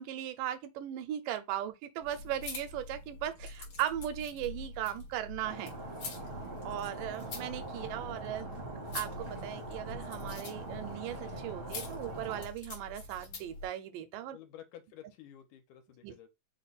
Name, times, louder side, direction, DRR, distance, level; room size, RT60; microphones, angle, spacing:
voice 1, 0.0-5.7 6.6-8.5 8.9-14.4 16.0-16.1, right 12 dB, 85° right, 2.2 m, -38 dB
sound 1, 2.0-13.7, left 3 dB, 55° left, 1.7 m, -45 dB
Stream, 5.4-12.5, right 2 dB, 50° right, 0.6 m, -43 dB
voice 2, 14.2-16.3, left 11 dB, 75° left, 2.1 m, -52 dB
5.1 x 2.2 x 4.0 m
omnidirectional pair, 3.8 m